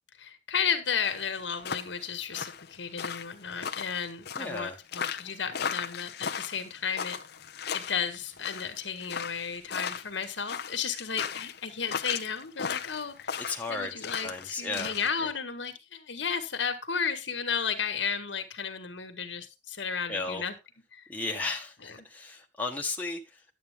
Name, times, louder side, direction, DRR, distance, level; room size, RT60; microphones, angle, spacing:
voice 1, 0.2-7.2 7.7-13.4 13.7-20.5 20.9-21.0, left 6 dB, 75° left, 1.7 m, -33 dB
sound 1, 1.0-15.1, left 7 dB, 60° left, 0.7 m, -36 dB
voice 2, 4.4-4.8 13.3-14.9 15.2-15.3 20.1-20.5 21.1-23.4, left 3 dB, 10° left, 1.3 m, -35 dB
10.5 x 8.5 x 3.6 m
head